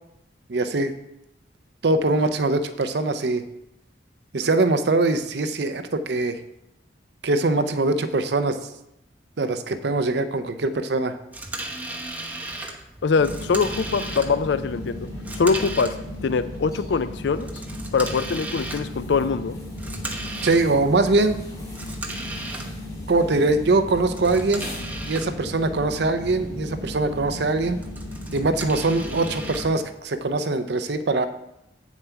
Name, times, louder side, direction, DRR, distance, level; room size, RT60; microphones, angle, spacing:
voice 1, 0.5-0.9 1.8-3.4 4.3-6.4 7.2-8.6 9.4-11.2 20.4-21.4 23.1-24.7 25.1-27.8 28.3-31.3, right 2 dB, 60° right, 10 dB, 0.6 m, -22 dB
sound 1, 11.3-30.5, right 2 dB, 10° right, 0.8 m, -38 dB
voice 2, 13.0-15.1 15.3-15.9 16.2-17.5 17.9-19.6, left 5 dB, 70° left, 13 dB, 0.4 m, -23 dB
sound 2, 13.1-29.7, left 1 dB, 20° left, 2.5 m, -35 dB
8.2 x 7.2 x 4.5 m, 0.85 s
head